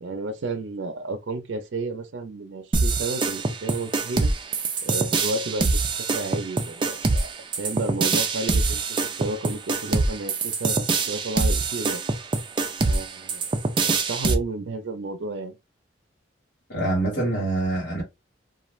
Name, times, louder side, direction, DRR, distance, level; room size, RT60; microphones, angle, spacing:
voice 1, 0.0-4.3 4.8-7.3 7.6-12.0 12.8-13.5 13.8-15.6, right 2 dB, 75° right, 0.5 m, -32 dB
sound 1, 2.7-14.3, right 3 dB, 25° right, 0.4 m, -24 dB
voice 2, 16.7-18.0, right 2 dB, 75° left, 1.5 m, -25 dB
2.4 x 2.4 x 3.1 m
head